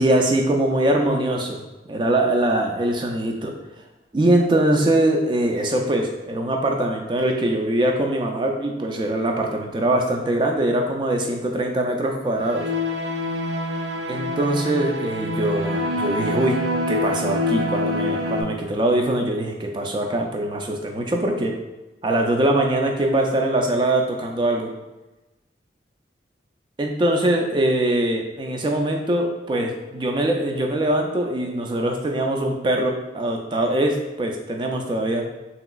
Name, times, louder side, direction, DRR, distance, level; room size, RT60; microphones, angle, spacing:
voice 1, 0.0-1.6 1.9-3.5 4.1-12.7 14.1-16.6 16.9-21.5 22.0-24.7 26.8-35.2, right 1 dB, 25° right, 2 dB, 0.3 m, -22 dB
sound 1, 12.4-18.4, left 1 dB, 90° right, 0.5 m, -26 dB
3.3 x 2.9 x 2.3 m, 1.1 s
head